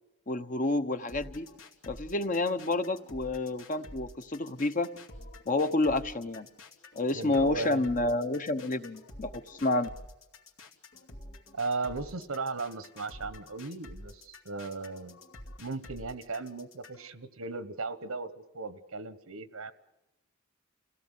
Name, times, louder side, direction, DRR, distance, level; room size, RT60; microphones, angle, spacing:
voice 1, 0.3-1.5 1.9-4.9 5.5-6.5 6.9-9.9, left 2 dB, 40° left, 9 dB, 1.0 m, -29 dB
sound 1, 1.1-17.1, left 1 dB, 75° left, 2.6 m, -49 dB
voice 2, 7.1-7.8 11.5-15.2 15.6-19.7, right 3 dB, 85° right, 13 dB, 1.3 m, -36 dB
28.0 x 17.0 x 8.3 m, 0.99 s
head